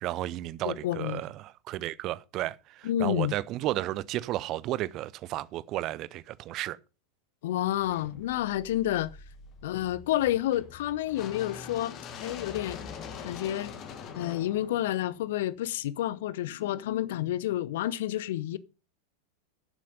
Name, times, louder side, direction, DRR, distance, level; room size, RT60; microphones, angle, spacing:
voice 1, 0.0-6.8, right 15 dB, 35° right, 0.5 m, -33 dB
voice 2, 0.6-1.2 2.8-3.3 7.4-9.1 9.6-12.8 13.2-13.8 14.1-18.6, left 13 dB, 55° left, 0.6 m, -29 dB
sound 1, 7.7-15.8, left 7 dB, 35° left, 2.0 m, -44 dB
11.0 x 7.5 x 5.3 m
figure-of-eight pair, 90°, 0 cm